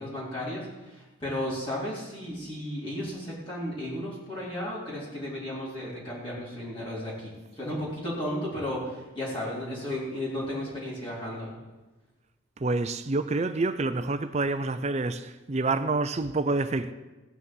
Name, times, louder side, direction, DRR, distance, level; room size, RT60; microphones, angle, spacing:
voice 1, 0.0-11.5, left 1 dB, 25° left, 3.9 m, -34 dB
voice 2, 12.6-16.9, right 3 dB, 30° right, 0.5 m, -27 dB
16.5 x 6.3 x 7.8 m
head